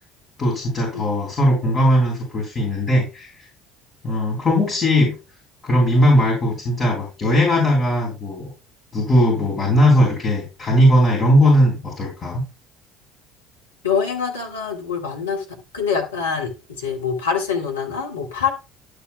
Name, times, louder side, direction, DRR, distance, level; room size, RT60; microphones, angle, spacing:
voice 1, 0.4-3.3 4.0-5.1 5.6-8.5 8.9-12.4, equal, 30° left, 3.9 m, -18 dB
voice 2, 13.8-15.4 15.7-18.5, left 6 dB, 75° left, 1.6 m, -24 dB
11.5 x 6.8 x 2.2 m
figure-of-eight pair, 60°, 0 cm